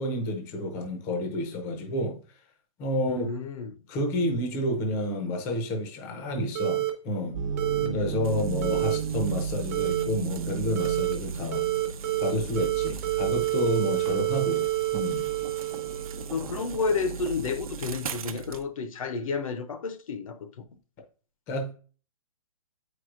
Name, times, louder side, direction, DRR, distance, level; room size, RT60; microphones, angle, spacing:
voice 1, 0.0-2.2 2.8-3.3 3.9-7.4 7.9-11.6 12.2-14.6 14.9-15.3 21.5-21.7, left 1 dB, 15° left, 0.6 m, -30 dB
voice 2, 3.1-3.8 7.8-8.8 16.3-20.5, left 4 dB, 70° left, 0.8 m, -31 dB
sound 1, 6.6-6.9 7.6-7.9 8.6-9.0 9.7-10.0 10.8-11.1 11.5-12.3 12.6-16.3, right 16 dB, 25° right, 0.9 m, -28 dB
sound 2, 7.3-18.6, right 7 dB, 60° right, 0.4 m, -35 dB
sound 3, 8.2-18.6, right 6 dB, 75° right, 0.8 m, -43 dB
8.1 x 4.7 x 2.5 m
hypercardioid pair, 165°, 18 cm